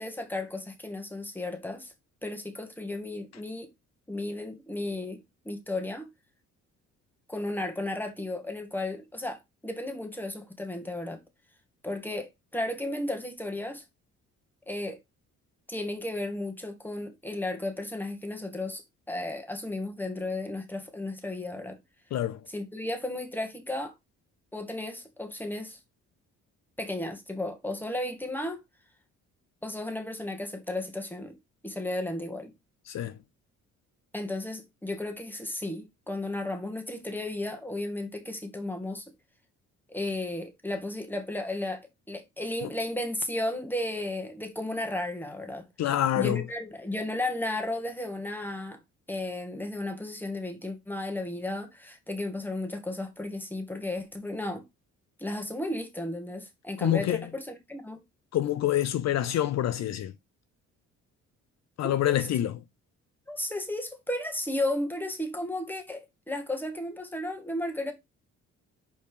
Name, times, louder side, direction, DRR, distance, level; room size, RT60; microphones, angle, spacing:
voice 1, 0.0-1.9 2.2-3.7 4.1-5.2 5.5-6.1 7.3-11.2 11.8-13.8 14.7-15.0 15.7-18.8 19.1-21.8 22.5-23.9 24.5-25.8 26.8-28.6 29.6-31.3 31.6-32.5 34.1-39.0 39.9-41.8 42.1-45.6 46.2-48.8 49.1-54.6 55.2-58.0 61.8-62.1 63.3-66.0 66.3-67.9, left 1 dB, 5° left, 1.9 m, -34 dB
voice 2, 45.8-46.4 56.8-57.3 58.3-60.1 61.8-62.6, left 12 dB, 60° left, 0.6 m, -26 dB
5.5 x 4.4 x 4.9 m
cardioid pair, 90°, 30 cm